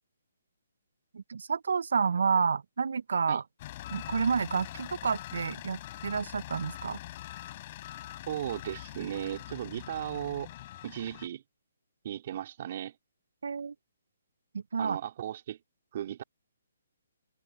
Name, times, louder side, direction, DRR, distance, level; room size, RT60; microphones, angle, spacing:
voice 1, 1.1-3.4 3.9-7.0 13.4-13.7 14.7-15.0, right 5 dB, 75° right, 0.4 m, -29 dB
sound 1, 3.6-11.3, left 14 dB, 40° left, 3.2 m, -43 dB
voice 2, 8.3-10.5 10.8-11.4 12.0-12.9 14.8-15.6 15.9-16.2, right 11 dB, 45° right, 3.0 m, -36 dB
open air
hypercardioid pair, 150°, 0 cm